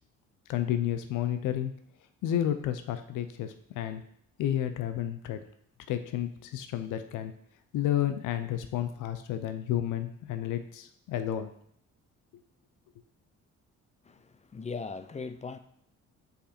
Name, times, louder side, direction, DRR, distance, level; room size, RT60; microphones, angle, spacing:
voice 1, 0.5-1.7 2.2-4.0 4.4-5.4 5.9-7.3 7.7-11.5, left 11 dB, 90° left, 9 dB, 0.6 m, -31 dB
voice 2, 14.0-15.6, left 4 dB, 25° left, 10 dB, 0.5 m, -39 dB
5.3 x 5.1 x 4.3 m, 0.67 s
cardioid pair, 90°, 30 cm